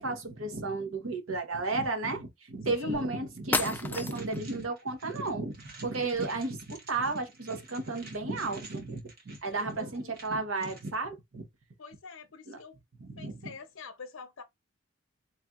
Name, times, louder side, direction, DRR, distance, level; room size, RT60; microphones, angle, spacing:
voice 1, 0.0-11.5 12.5-12.6 13.0-13.4, right 3 dB, 80° right, 1.0 m, -33 dB
voice 2, 2.7-3.1 9.5-10.2 11.8-12.8 13.2-14.4, left 5 dB, 85° left, 0.7 m, -47 dB
sound 1, 2.9-3.0 3.5-4.4, left 3 dB, 10° left, 0.3 m, -31 dB
sound 2, 4.1-10.9, right 3 dB, 50° right, 1.3 m, -53 dB
4.2 x 3.2 x 2.4 m
head